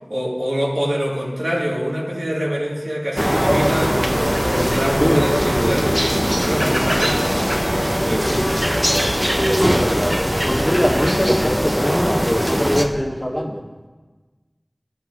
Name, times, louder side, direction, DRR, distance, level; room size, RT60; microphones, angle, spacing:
voice 1, 0.1-7.5 8.0-8.5 10.6-10.7, equal, 65° right, -4 dB, 1.5 m, -25 dB
sound 1, 3.2-12.8, equal, 10° right, 0.6 m, -20 dB
voice 2, 9.4-10.1 10.4-13.6, equal, 15° left, -5 dB, 1.5 m, -22 dB
13.0 x 5.6 x 2.4 m, 1.3 s
wide cardioid pair, 40°, 0 cm